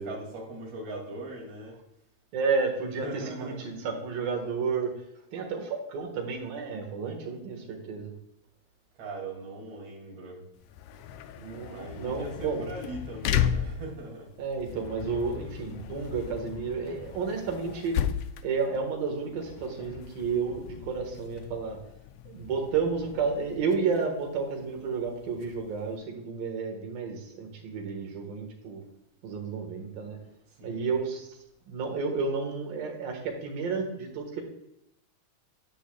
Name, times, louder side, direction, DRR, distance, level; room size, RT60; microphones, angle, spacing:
voice 1, 0.0-1.8 2.8-3.8 9.0-10.4 11.6-14.3 30.5-30.9, right 2 dB, 50° right, -2 dB, 3.4 m, -40 dB
voice 2, 2.3-4.9 5.3-8.1 11.4-12.6 14.4-18.0 18.4-21.8 22.3-28.8 29.2-30.2 30.6-31.3 31.7-34.4, right 5 dB, 80° right, 2 dB, 3.2 m, -31 dB
sound 1, 10.6-25.9, left 9 dB, 85° left, 1.7 m, -36 dB
10.0 x 8.1 x 2.3 m, 0.82 s
omnidirectional pair, 4.0 m